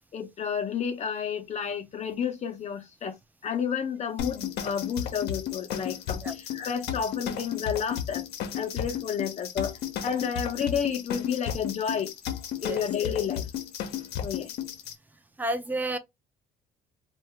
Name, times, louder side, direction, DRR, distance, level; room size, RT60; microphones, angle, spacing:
voice 1, 0.1-3.2 3.4-8.3 8.6-12.1 12.6-13.5 14.2-14.5, left 7 dB, 40° left, 0.6 m, -31 dB
sound 1, 4.2-14.9, left 9 dB, 80° left, 0.6 m, -34 dB
voice 2, 15.4-16.0, right 1 dB, 10° right, 0.5 m, -30 dB
2.6 x 2.3 x 3.1 m
cardioid pair, 110°, 17 cm